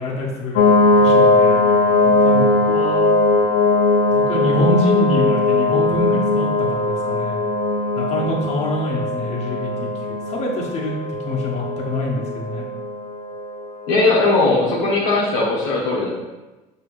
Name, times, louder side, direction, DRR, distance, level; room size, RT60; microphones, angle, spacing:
voice 1, 0.0-1.6 2.0-3.0 4.1-7.4 7.9-10.9 11.2-12.6, left 1 dB, 45° left, -4 dB, 1.4 m, -25 dB
sound 1, 0.6-14.2, left 2 dB, 70° left, 0.7 m, -19 dB
voice 2, 13.9-16.1, left 2 dB, 85° left, -4 dB, 1.1 m, -18 dB
5.4 x 3.0 x 3.2 m, 1.1 s
supercardioid pair, 85°, 16 cm